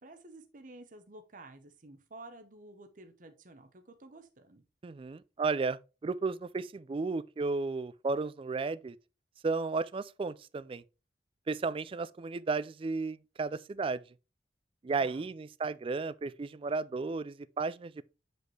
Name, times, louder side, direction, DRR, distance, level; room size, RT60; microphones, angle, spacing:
voice 1, 0.0-4.6 15.0-15.3, right 2 dB, 45° right, 0.8 m, -52 dB
voice 2, 4.8-9.0 9.4-10.8 11.5-14.0 14.8-18.0, right 4 dB, 30° right, 0.3 m, -34 dB
7.8 x 5.2 x 3.2 m
head